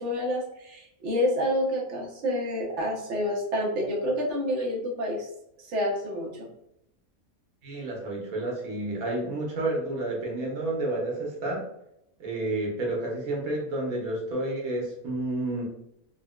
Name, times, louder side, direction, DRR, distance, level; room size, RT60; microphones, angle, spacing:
voice 1, 0.0-5.3 5.6-6.5, equal, 60° right, -1 dB, 1.1 m, -28 dB
voice 2, 7.6-11.7 12.2-15.6, right 2 dB, 80° right, -2 dB, 1.4 m, -30 dB
3.9 x 2.1 x 2.3 m, 0.80 s
omnidirectional pair, 1.5 m